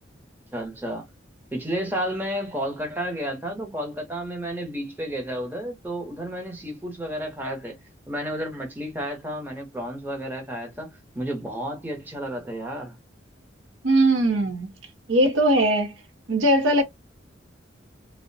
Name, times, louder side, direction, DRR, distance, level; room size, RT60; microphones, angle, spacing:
voice 1, 0.5-1.0 1.5-7.8 8.1-10.9 11.2-12.9, equal, 10° right, 0.7 m, -31 dB
voice 2, 13.8-14.7 15.1-15.9 16.3-16.8, right 1 dB, 85° right, 0.7 m, -20 dB
2.4 x 2.1 x 2.5 m
head